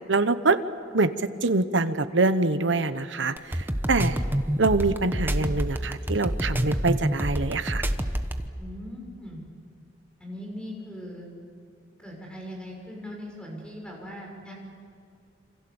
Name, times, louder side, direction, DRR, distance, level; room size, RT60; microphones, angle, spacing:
voice 1, 0.1-0.6 0.9-1.1 1.4-3.6 3.9-4.2 4.6-7.8, right 3 dB, 85° right, 11 dB, 1.1 m, -24 dB
sound 1, 3.4-8.5, equal, 10° right, 1.0 m, -27 dB
voice 2, 8.6-9.4 10.2-11.3 12.0-14.5, equal, 5° left, -1 dB, 6.5 m, -39 dB
28.0 x 26.0 x 7.2 m, 2.4 s
head